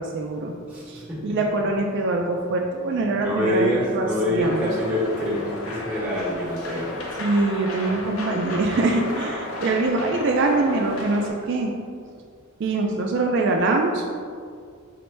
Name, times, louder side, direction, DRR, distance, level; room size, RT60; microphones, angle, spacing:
voice 1, 0.0-0.5 0.9-4.7 7.2-11.7 12.6-14.0, right 2 dB, 55° right, 1 dB, 0.3 m, -24 dB
voice 2, 0.7-1.4 2.9-7.0 7.9-8.0, equal, 5° right, -5 dB, 0.9 m, -26 dB
sound 1, 4.4-11.3, left 1 dB, 85° left, 0.6 m, -33 dB
4.2 x 2.1 x 4.4 m, 2.1 s
head